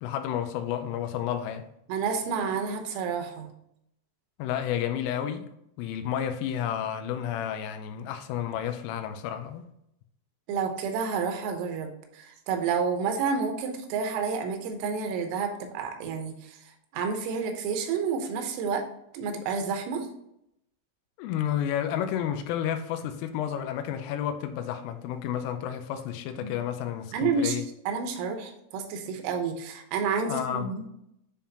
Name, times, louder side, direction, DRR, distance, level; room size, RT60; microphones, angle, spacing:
voice 1, 0.0-1.7 4.4-5.5 5.8-9.7 21.2-27.6 30.3-30.7, left 10 dB, 90° left, 3.2 m, -31 dB
voice 2, 1.9-3.5 10.5-16.6 16.9-18.8 19.1-20.1 26.4-26.6 27.1-30.8, right 5 dB, 85° right, 3.5 m, -30 dB
10.0 x 3.6 x 2.8 m
omnidirectional pair, 5.8 m